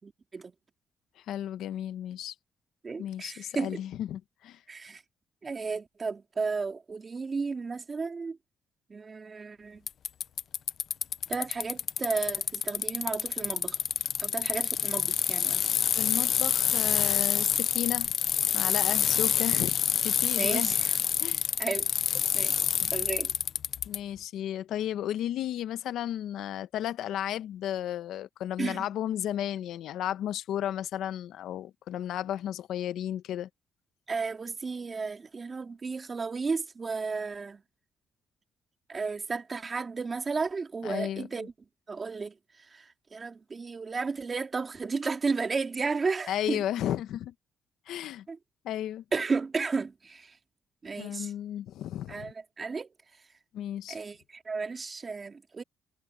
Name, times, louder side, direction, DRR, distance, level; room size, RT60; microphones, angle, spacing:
voice 1, 0.0-0.5 2.8-3.8 4.7-5.0 5.4-8.4 8.9-9.8 11.3-13.8 14.2-15.6 20.4-20.9 21.6-21.9 22.3-22.6 22.9-23.3 28.6-28.9 34.1-37.6 38.9-41.5 41.9-42.4 42.7-46.6 48.3-48.4 49.1-50.4 50.8-51.3 52.1-52.9 53.9-55.6, right 4 dB, 35° right, 2.6 m, -33 dB
voice 2, 1.3-2.3 3.0-4.6 15.9-18.1 18.5-20.7 21.2-21.5 22.8-22.9 23.9-33.5 40.8-41.3 46.3-47.3 47.9-48.2 48.6-49.0 51.0-52.3 53.5-54.0, left 11 dB, 80° left, 1.1 m, -34 dB
Bicycle, 9.9-24.0, left 8 dB, 60° left, 0.6 m, -27 dB
cardioid pair, 90°, 0 cm